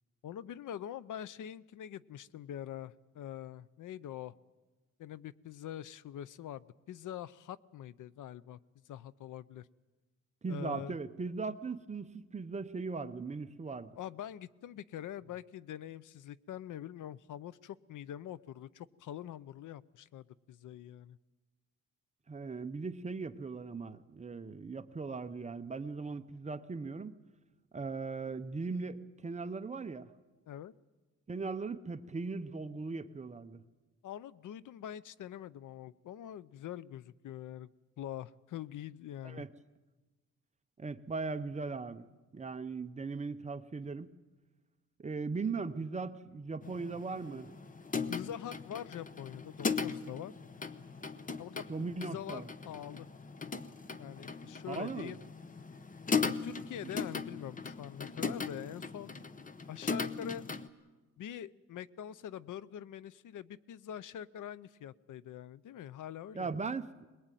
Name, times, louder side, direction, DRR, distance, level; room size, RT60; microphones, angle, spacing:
voice 1, 0.2-4.3 5.0-8.6 8.9-9.7 10.5-11.0 14.0-21.2 30.5-30.7 34.0-37.7 38.0-39.4 48.1-50.3 51.4-53.1 54.0-55.2 56.2-59.2 59.7-60.5 61.2-66.6, left 10 dB, 85° left, 18 dB, 0.7 m, -44 dB
voice 2, 10.4-13.9 22.3-27.1 27.7-30.1 31.3-33.6 39.2-39.5 40.8-42.0 42.3-44.1 45.0-47.5 51.7-52.5 54.7-55.1 66.3-67.1, right 4 dB, 25° right, 10 dB, 0.7 m, -39 dB
sound 1, 46.6-60.7, left 4 dB, 25° left, 0.8 m, -38 dB
21.5 x 21.0 x 9.1 m, 1.2 s
wide cardioid pair, 160°, 30 cm